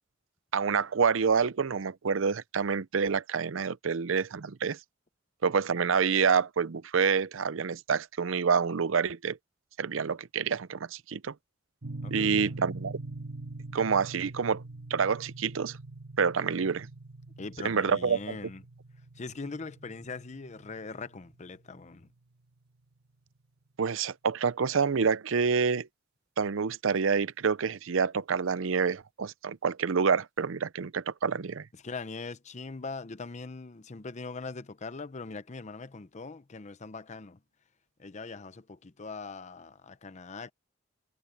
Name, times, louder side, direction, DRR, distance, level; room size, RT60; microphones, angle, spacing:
voice 1, 0.5-4.8 5.4-9.4 9.8-11.3 12.1-13.0 13.7-14.6 14.9-15.8 16.2-16.9 17.6-18.4 23.8-25.9 26.4-31.7, right 6 dB, 80° right, 0.6 m, -27 dB
sound 1, 11.8-22.0, right 2 dB, 55° right, 1.6 m, -43 dB
voice 2, 12.0-12.5 17.4-18.6 19.2-22.1 31.7-37.4 38.0-40.5, left 3 dB, 35° left, 0.7 m, -41 dB
head